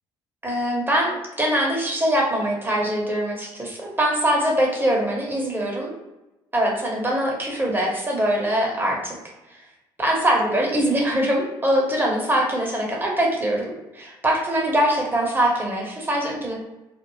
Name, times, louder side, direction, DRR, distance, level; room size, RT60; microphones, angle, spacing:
voice 1, 0.4-6.0 6.5-9.1 10.0-16.6, right 1 dB, 20° right, -1 dB, 1.0 m, -23 dB
2.5 x 2.0 x 3.0 m, 0.99 s
supercardioid pair, 60°, 10 cm